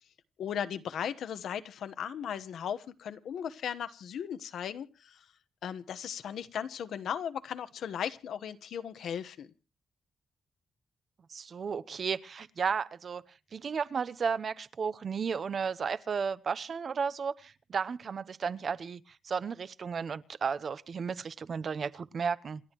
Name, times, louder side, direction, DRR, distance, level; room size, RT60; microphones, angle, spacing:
voice 1, 0.4-5.2 5.6-9.5, left 8 dB, 85° left, 1.2 m, -37 dB
voice 2, 11.3-13.2 13.5-22.6, right 6 dB, 45° right, 0.9 m, -33 dB
28.5 x 11.0 x 3.0 m
wide cardioid pair, 140°, 0 cm